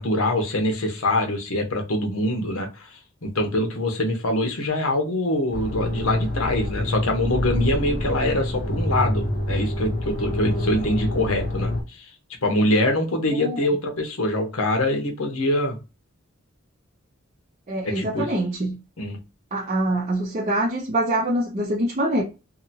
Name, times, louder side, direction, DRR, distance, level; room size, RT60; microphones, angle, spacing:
voice 1, 0.0-12.1 12.4-15.8 17.8-18.3 19.0-19.2, left 1 dB, 80° left, 1.0 m, -24 dB
sound 1, 5.5-11.8, left 1 dB, 45° left, 0.7 m, -26 dB
voice 2, 17.7-18.8 19.5-22.2, right 1 dB, 35° right, 0.5 m, -24 dB
2.8 x 2.7 x 2.6 m
head